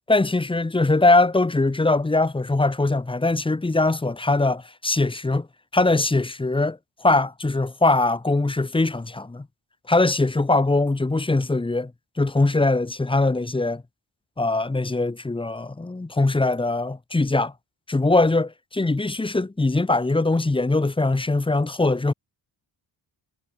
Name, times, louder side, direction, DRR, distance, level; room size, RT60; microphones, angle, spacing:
voice 1, 0.1-5.5 5.7-9.5 9.9-11.9 12.2-13.8 14.4-17.5 17.9-22.1, left 2 dB, 10° left, 2.0 m, -21 dB
wide cardioid pair, 170°, 43 cm